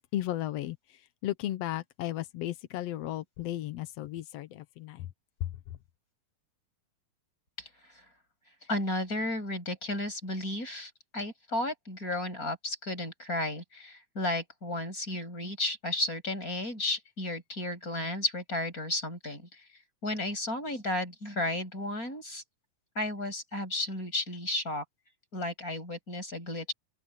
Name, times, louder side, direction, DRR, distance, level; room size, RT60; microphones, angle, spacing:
voice 1, 0.1-0.8 1.2-5.1 5.4-5.5, left 13 dB, 75° left, 1.4 m, -34 dB
voice 2, 8.7-19.6 20.0-22.4 22.9-24.8 25.3-26.7, left 1 dB, 20° left, 8.5 m, -33 dB
open air
omnidirectional pair, 4.0 m